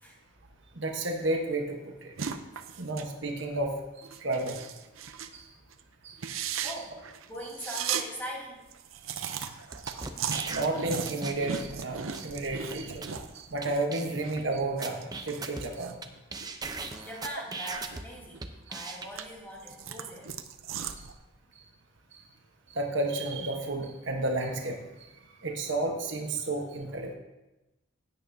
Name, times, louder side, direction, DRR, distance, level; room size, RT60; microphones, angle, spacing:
voice 1, 0.7-2.1 2.8-4.7 5.3-5.5 6.0-6.2 9.2-9.4 9.8-10.0 10.4-13.0 13.3-16.0 17.0-17.1 22.1-22.2 22.7-24.8 25.4-27.2, right 2 dB, 60° right, 2 dB, 1.1 m, -32 dB
sound 1, 2.2-3.1 3.4-3.6 4.0-5.4 5.7-5.8 6.1-8.1 8.4-8.5 8.7-13.8 14.1-17.1 17.4-18.4 18.8-21.1, right 7 dB, 80° right, 0.7 m, -37 dB
voice 2, 6.6-8.6 17.0-20.3, equal, 10° left, -5 dB, 2.5 m, -41 dB
sound 2, 9.7-11.8 12.1-12.3 12.7-12.8 13.0-13.2 13.6-13.7 13.9-14.4 14.8-16.1 16.3-18.0 18.4-19.1, right 4 dB, 20° right, 0.6 m, -38 dB
16.0 x 8.9 x 2.7 m, 1.0 s
head